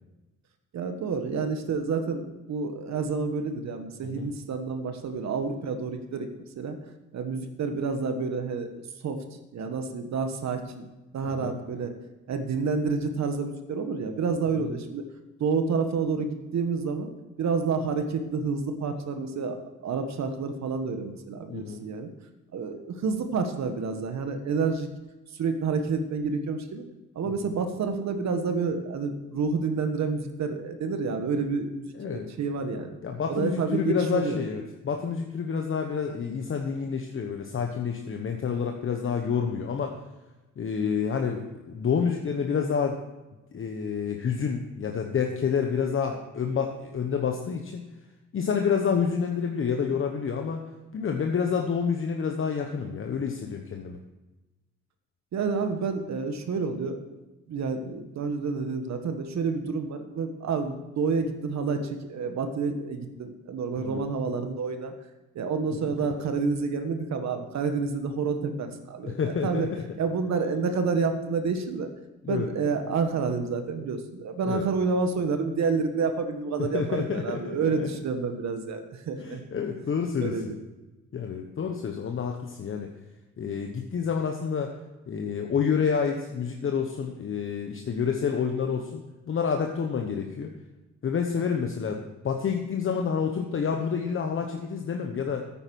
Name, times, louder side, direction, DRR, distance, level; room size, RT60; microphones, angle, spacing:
voice 1, 0.7-6.8 7.1-9.2 9.5-10.9 11.1-11.9 12.3-15.0 15.4-17.1 17.4-22.1 22.5-24.9 25.3-26.8 27.1-33.0 33.3-34.4 55.3-57.2 57.5-64.9 65.3-69.7 70.0-71.9 72.3-79.4 80.2-80.6, right 4 dB, 65° right, 7 dB, 1.4 m, -29 dB
voice 2, 21.5-21.8 27.2-27.3 32.0-32.3 33.0-40.0 40.6-43.0 43.5-47.8 48.3-50.6 50.9-54.0 63.8-64.1 69.0-69.8 72.2-72.5 74.5-74.6 76.6-77.9 79.2-80.5 81.1-82.9 83.4-84.7 85.1-90.5 91.0-95.4, left 6 dB, 45° left, 4 dB, 1.1 m, -28 dB
9.2 x 9.1 x 6.3 m, 1.1 s
cardioid pair, 90°, 30 cm